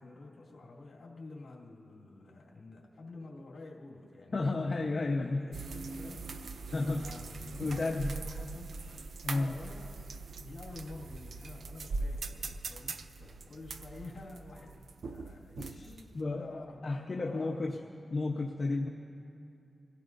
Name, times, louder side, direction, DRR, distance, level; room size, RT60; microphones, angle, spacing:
voice 1, 0.0-8.8 9.3-10.0 10.4-17.8, left 2 dB, 75° left, -4 dB, 2.6 m, -49 dB
voice 2, 4.3-5.4 6.7-7.2 7.6-8.1 9.2-9.6 15.6-17.8 18.1-18.9, left 3 dB, 55° left, 1 dB, 1.0 m, -32 dB
sound 1, 5.5-16.2, right 3 dB, 80° right, 0.6 m, -41 dB
26.0 x 16.5 x 2.7 m, 2.6 s
cardioid pair, 60°, 0 cm